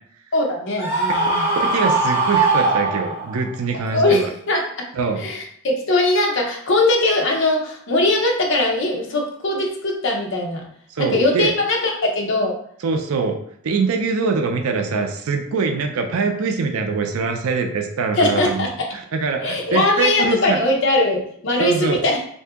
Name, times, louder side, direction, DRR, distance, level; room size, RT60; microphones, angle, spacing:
voice 1, 0.3-1.5 3.9-4.6 5.2-10.6 11.0-12.5 18.2-18.9 19.4-22.2, left 2 dB, 60° left, 1 dB, 0.7 m, -20 dB
Screaming, 0.8-3.5, right 3 dB, 10° right, 1.1 m, -20 dB
voice 2, 1.7-4.3 4.9-5.2 10.9-11.5 12.8-13.4 13.6-18.7 18.9-20.6 21.6-22.0, right 4 dB, 85° right, 5 dB, 0.4 m, -23 dB
2.7 x 2.6 x 3.5 m, 0.65 s
head